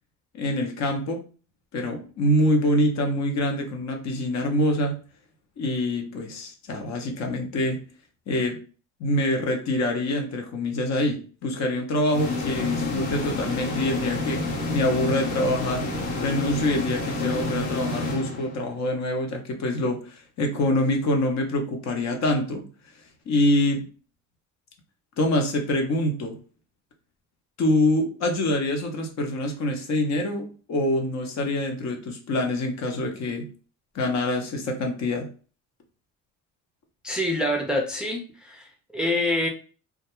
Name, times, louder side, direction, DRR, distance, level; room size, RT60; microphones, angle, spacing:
voice 1, 0.3-1.2 1.7-5.0 5.6-7.8 8.3-8.6 9.0-14.4 14.7-15.9 16.2-22.7 23.3-23.9 25.2-26.4 27.6-33.5 33.9-35.3, left 1 dB, 55° left, 3 dB, 0.8 m, -25 dB
sound 1, 12.1-18.9, left 2 dB, 80° left, 1.0 m, -29 dB
voice 2, 37.0-38.6 38.9-39.5, left 1 dB, 5° right, 1 dB, 0.5 m, -26 dB
2.3 x 2.2 x 2.9 m, 0.37 s
supercardioid pair, 90°, 34 cm